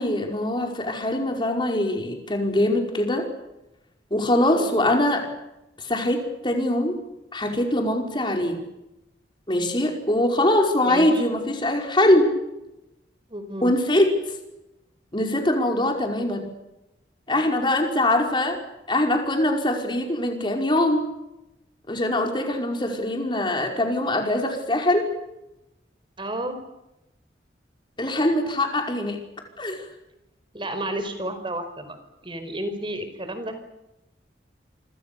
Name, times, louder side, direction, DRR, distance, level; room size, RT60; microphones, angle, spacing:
voice 1, 0.0-3.3 4.1-5.2 5.8-7.0 7.3-8.6 9.5-12.3 13.6-14.1 15.1-16.5 17.3-18.6 18.9-21.0 21.9-25.1 28.0-29.2 29.6-29.9, left 1 dB, 25° left, 2 dB, 5.2 m, -22 dB
voice 2, 4.5-5.0 10.8-11.2 13.3-13.8 26.2-26.6 30.5-32.0 32.2-33.6, right 1 dB, 30° right, 9 dB, 4.9 m, -31 dB
28.0 x 26.0 x 7.0 m, 0.91 s
head